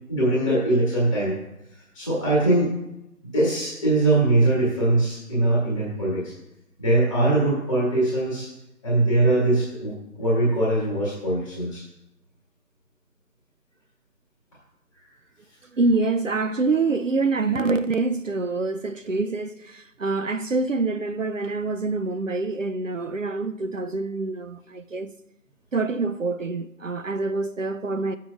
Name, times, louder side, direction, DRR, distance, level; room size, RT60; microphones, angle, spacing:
voice 1, 0.1-1.3 1.7-2.7 3.3-6.3 6.8-8.5 8.8-11.8, right 2 dB, 5° left, 1.3 m, -22 dB
voice 2, 15.6-25.1 25.7-28.2, right 3 dB, 55° right, 0.6 m, -26 dB
16.0 x 7.4 x 2.5 m
figure-of-eight pair, 170°, 47 cm